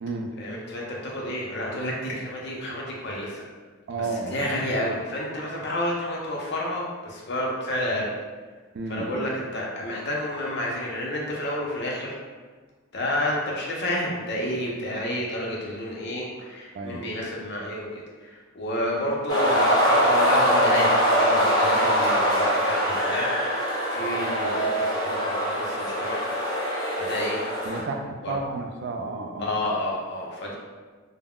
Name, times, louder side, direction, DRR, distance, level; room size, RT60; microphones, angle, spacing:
voice 1, 0.4-3.5 3.9-8.1 8.9-12.2 12.9-23.3 23.9-26.2 26.6-27.4 28.2-28.4 29.4-30.6, left 1 dB, 60° left, -3 dB, 0.6 m, -30 dB
voice 2, 3.9-4.5 8.7-9.0 16.7-17.0 27.7-29.5, right 3 dB, 55° right, 3 dB, 0.3 m, -31 dB
sound 1, 19.3-27.8, equal, 20° left, 0.9 m, -23 dB
2.3 x 2.0 x 3.5 m, 1.4 s
head